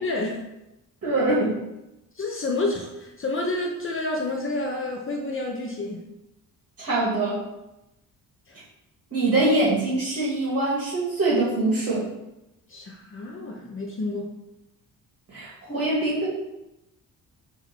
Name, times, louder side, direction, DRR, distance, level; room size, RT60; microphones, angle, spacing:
voice 1, 0.0-0.4 2.1-6.0 8.5-8.6 12.7-14.3, left 2 dB, 35° left, 0 dB, 1.0 m, -29 dB
voice 2, 1.0-1.6 6.8-7.4 9.1-12.1 15.3-16.3, right 2 dB, 45° right, -6 dB, 2.1 m, -23 dB
7.0 x 3.0 x 5.9 m, 0.93 s
cardioid pair, 105°, 35 cm